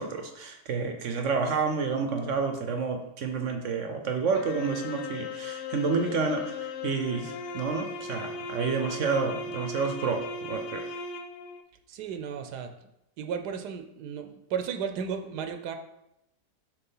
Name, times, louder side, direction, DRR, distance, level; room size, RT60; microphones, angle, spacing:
voice 1, 0.0-10.9, right 4 dB, 60° right, 5 dB, 0.9 m, -29 dB
sound 1, 4.3-11.6, left 3 dB, 80° left, 1.1 m, -37 dB
voice 2, 11.9-12.7 13.2-15.8, right 7 dB, 80° right, 7 dB, 1.2 m, -34 dB
7.0 x 3.4 x 5.5 m, 0.85 s
omnidirectional pair, 1.8 m